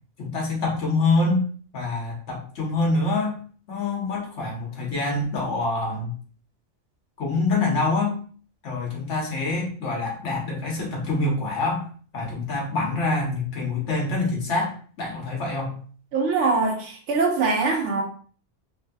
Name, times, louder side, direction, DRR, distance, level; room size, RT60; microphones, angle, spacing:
voice 1, 0.2-1.4 1.7-3.4 3.7-6.1 7.2-8.2 8.6-11.9 12.1-15.8, left 3 dB, 80° left, -1 dB, 1.3 m, -25 dB
voice 2, 16.1-18.0, right 4 dB, 80° right, 2 dB, 1.1 m, -23 dB
3.2 x 2.6 x 2.3 m, 0.43 s
omnidirectional pair, 1.2 m